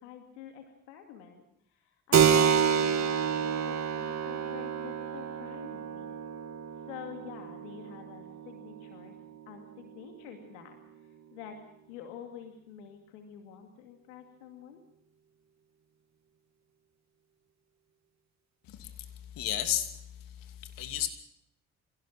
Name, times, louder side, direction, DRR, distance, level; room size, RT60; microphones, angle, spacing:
voice 1, 0.0-6.2 6.9-9.1 9.5-11.6 11.9-14.8, left 9 dB, 90° left, 5 dB, 2.4 m, -48 dB
Keyboard (musical), 2.1-10.3, right 7 dB, 50° right, 1.8 m, -29 dB
voice 2, 18.7-19.1 19.4-19.9 20.4-21.1, left 11 dB, 75° left, 8 dB, 2.8 m, -32 dB
26.0 x 17.5 x 6.1 m, 0.73 s
hypercardioid pair, 50°, 34 cm